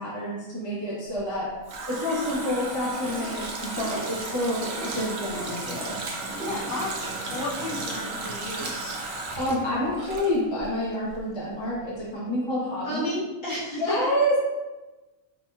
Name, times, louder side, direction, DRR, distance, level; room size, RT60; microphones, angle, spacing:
voice 1, 0.0-1.5 1.9-5.9 9.3-13.1 13.8-14.4, equal, 25° left, -7 dB, 0.7 m, -28 dB
Water tap faucet, 1.2-10.8 11.1-11.2, right 2 dB, 80° right, 0.4 m, -34 dB
voice 2, 6.3-9.0 12.8-13.9, left 1 dB, 40° left, -9 dB, 1.4 m, -33 dB
4.9 x 2.8 x 2.3 m, 1.1 s
omnidirectional pair, 1.5 m